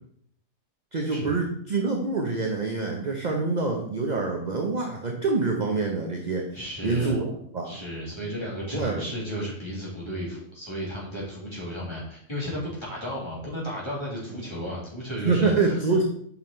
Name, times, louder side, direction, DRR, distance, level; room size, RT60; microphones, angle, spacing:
voice 1, 0.9-6.6 6.8-7.8 8.7-9.1 15.2-16.0, right 3 dB, 35° right, 1 dB, 0.8 m, -26 dB
voice 2, 6.5-7.1 7.6-15.5, equal, 20° left, -6 dB, 2.7 m, -34 dB
6.0 x 5.6 x 4.4 m, 0.65 s
omnidirectional pair, 1.5 m